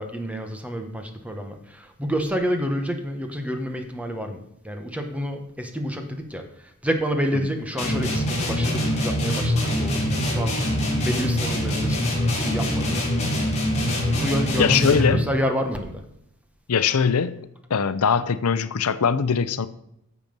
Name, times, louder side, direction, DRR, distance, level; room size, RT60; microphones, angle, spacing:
voice 1, 0.0-4.4 4.6-6.4 6.8-10.6 11.0-12.0 12.4-13.0 14.2-16.0, equal, 5° right, 1.3 m, -28 dB
sound 1, 7.8-15.3, left 1 dB, 30° left, 3.7 m, -24 dB
voice 2, 14.6-15.3 16.7-17.4 17.7-19.7, left 6 dB, 75° left, 0.6 m, -21 dB
11.5 x 7.4 x 5.3 m
head